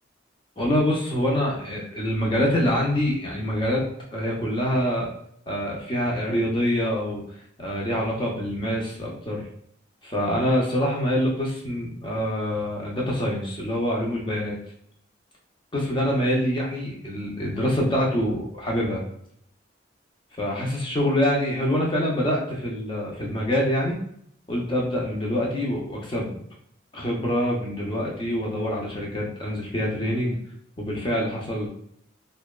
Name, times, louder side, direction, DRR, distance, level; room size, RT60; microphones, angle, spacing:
voice 1, 0.6-5.1 5.5-7.2 7.6-9.5 10.0-14.6 15.7-19.0 20.4-24.0 24.5-26.3 26.9-30.4 30.8-31.7, equal, 25° left, -3 dB, 0.6 m, -25 dB
2.7 x 2.2 x 2.2 m, 0.70 s
head